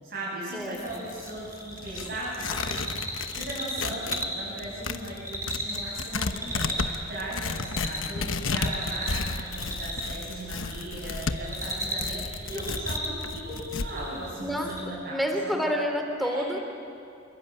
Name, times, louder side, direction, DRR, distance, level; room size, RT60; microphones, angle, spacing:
voice 1, 0.0-15.6 16.2-16.5, right 1 dB, 60° right, -7 dB, 7.9 m, -37 dB
voice 2, 0.5-1.0 3.8-3.9 14.4-14.7 15.1-16.6, equal, ahead, 3 dB, 3.0 m, -29 dB
Tearing, 0.6-4.3 4.6-13.9, left 4 dB, 80° left, 1.1 m, -33 dB
sound 1, 0.9-14.8, equal, 15° right, 4.9 m, -37 dB
26.5 x 23.5 x 9.1 m, 2.5 s
head